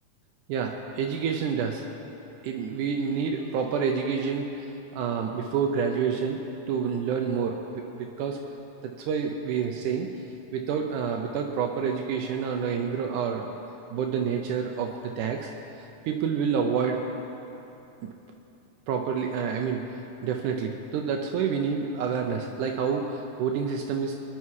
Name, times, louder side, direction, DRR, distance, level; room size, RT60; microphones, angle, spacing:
voice 1, 0.5-1.8 2.4-8.4 8.8-10.1 10.5-13.5 13.9-15.5 16.1-17.0 18.0-18.1 18.9-24.1, right 6 dB, 80° right, 2 dB, 2.3 m, -28 dB
23.0 x 10.5 x 4.8 m, 2.9 s
omnidirectional pair, 3.6 m